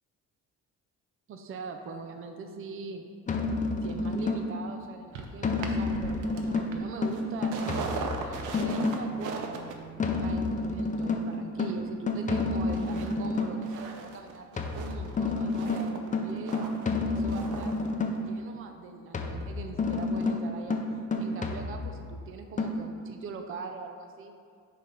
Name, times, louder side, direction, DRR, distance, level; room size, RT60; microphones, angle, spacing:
voice 1, 1.3-3.1 3.8-9.7 10.2-14.5 14.7-16.6 17.1-17.8 18.1-20.8 21.2-24.3, right 4 dB, 45° right, 5 dB, 0.5 m, -41 dB
sound 1, 3.3-4.7 5.4-9.2 10.0-13.7 14.6-18.4 19.1-22.1 22.6-22.7, left 3 dB, 25° left, 0.6 m, -30 dB
sound 2, 5.1-12.3 12.7-13.1 13.4-17.9 18.2-18.3, right 4 dB, 90° right, 0.7 m, -40 dB
5.2 x 4.1 x 5.6 m, 2.3 s
cardioid pair, 90°, 30 cm